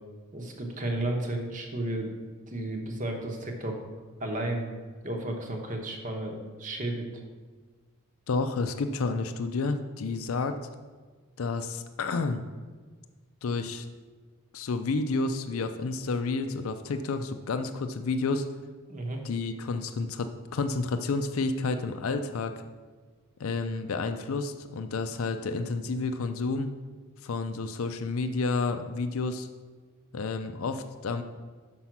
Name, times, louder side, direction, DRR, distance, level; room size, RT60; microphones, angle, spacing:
voice 1, 0.3-2.1 2.5-3.8 4.2-4.7 5.0-7.1 18.9-19.2, right 1 dB, 40° right, 2 dB, 1.0 m, -33 dB
voice 2, 8.3-10.6 11.4-12.4 13.4-13.9 14.5-18.5 19.2-22.5 23.4-26.7 27.2-29.5 30.1-31.2, left 3 dB, 75° left, 8 dB, 0.5 m, -30 dB
6.1 x 5.6 x 5.9 m, 1.4 s
head